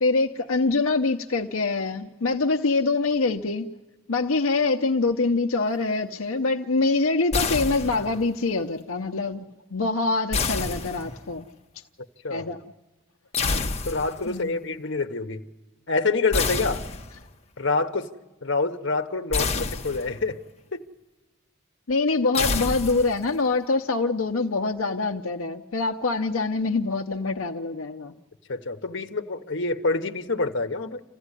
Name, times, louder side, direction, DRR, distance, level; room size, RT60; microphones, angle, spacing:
voice 1, 0.0-3.7 4.1-9.4 9.7-11.5 12.3-12.6 14.3-14.6 21.9-28.2, left 3 dB, 75° left, 4 dB, 0.7 m, -25 dB
sound 1, 7.3-8.3 10.3-11.4 13.3-14.3 16.3-17.3 19.3-20.3 22.3-23.3, left 4 dB, 30° left, 1.0 m, -28 dB
voice 2, 13.8-15.4 15.9-16.8 17.6-18.1 18.4-20.4 20.7-20.8 28.5-31.0, left 3 dB, 55° left, 6 dB, 1.1 m, -26 dB
27.0 x 15.5 x 9.8 m, 1.1 s
head